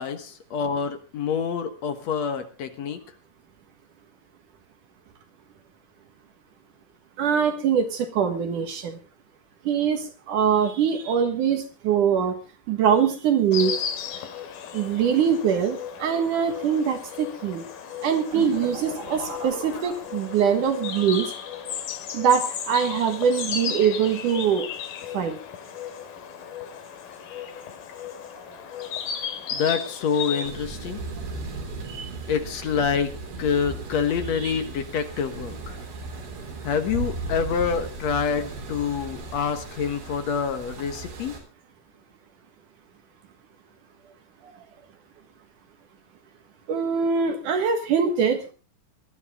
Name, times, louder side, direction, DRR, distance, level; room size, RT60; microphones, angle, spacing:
voice 1, 0.0-3.0 29.5-31.0 32.3-33.1 33.4-35.7 36.6-41.3, left 6 dB, 60° left, 8 dB, 2.3 m, -27 dB
voice 2, 7.2-9.0 9.6-12.4 12.7-13.7 14.7-17.6 18.0-21.3 22.1-24.7 25.1-25.4 31.9-32.1 34.4-34.5 46.7-48.4, right 7 dB, 65° right, 7 dB, 2.9 m, -23 dB
Insect, 13.5-30.5, left 8 dB, 85° left, 3.5 m, -35 dB
sound 1, 18.3-20.7, equal, 20° right, 4.1 m, -37 dB
sound 2, 30.4-41.4, right 3 dB, 85° right, 5.4 m, -36 dB
19.5 x 13.0 x 3.7 m, 0.32 s
omnidirectional pair, 4.1 m